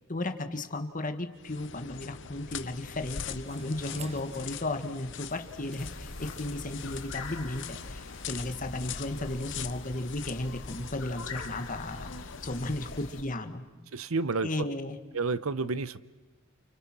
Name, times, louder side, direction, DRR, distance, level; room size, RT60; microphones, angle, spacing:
voice 1, 0.1-12.2 12.4-13.6 14.4-15.0, left 2 dB, 40° left, 7 dB, 1.7 m, -35 dB
sound 1, 1.4-13.3, left 7 dB, 60° left, 0.9 m, -43 dB
sound 2, 2.5-8.4, right 4 dB, 30° right, 1.3 m, -53 dB
sound 3, 5.8-13.2, left 3 dB, 80° left, 2.4 m, -43 dB
voice 2, 13.9-14.5 15.1-16.0, right 3 dB, 90° right, 16 dB, 0.9 m, -30 dB
29.5 x 29.0 x 6.1 m, 1.1 s
head